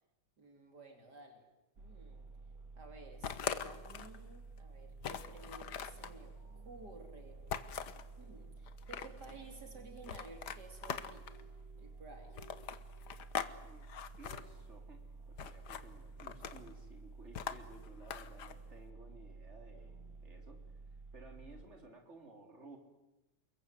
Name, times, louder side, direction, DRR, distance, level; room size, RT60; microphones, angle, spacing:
voice 1, 0.4-1.5 1.8-2.2 2.8-7.4 8.2-11.3 11.8-12.4, right 3 dB, 70° right, 4 dB, 3.6 m, -54 dB
sound 1, 1.8-21.7, right 3 dB, 55° right, 2.2 m, -52 dB
Pick up small carton box with items inside, 3.2-4.2 4.6-4.7 5.0-6.1 7.5-8.1 8.7-9.3 10.0-11.4 12.4-13.5 13.8-14.4 15.4-15.8 16.2-16.7 17.3-18.5, left 8 dB, 75° left, 1.7 m, -41 dB
voice 2, 14.2-20.8 21.1-22.8, right 2 dB, 40° right, 3 dB, 4.1 m, -57 dB
29.0 x 22.0 x 8.0 m, 0.98 s
omnidirectional pair, 1.8 m